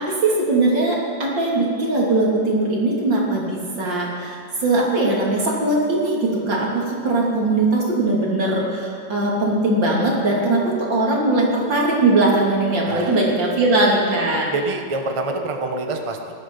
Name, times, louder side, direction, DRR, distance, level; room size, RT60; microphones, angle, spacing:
voice 1, 0.0-14.5, right 2 dB, 85° right, -3 dB, 3.5 m, -20 dB
voice 2, 12.9-13.2 14.5-16.3, right 3 dB, 20° right, 4 dB, 1.0 m, -26 dB
18.0 x 12.0 x 5.5 m, 2.6 s
omnidirectional pair, 1.9 m